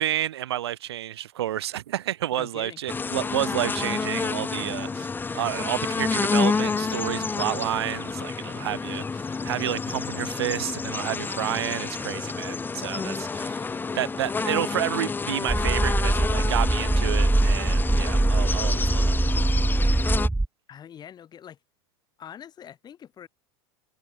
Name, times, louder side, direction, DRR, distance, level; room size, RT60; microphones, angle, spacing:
voice 1, 0.0-19.1, right 12 dB, 90° right, 0.9 m, -30 dB
voice 2, 2.4-2.8 20.7-21.6 22.2-23.3, left 9 dB, 30° left, 2.2 m, -43 dB
sound 1, 2.9-20.3, left 4 dB, 15° left, 0.8 m, -29 dB
sound 2, 15.5-20.5, right 2 dB, 5° right, 0.3 m, -22 dB
supercardioid pair, 105°, 13 cm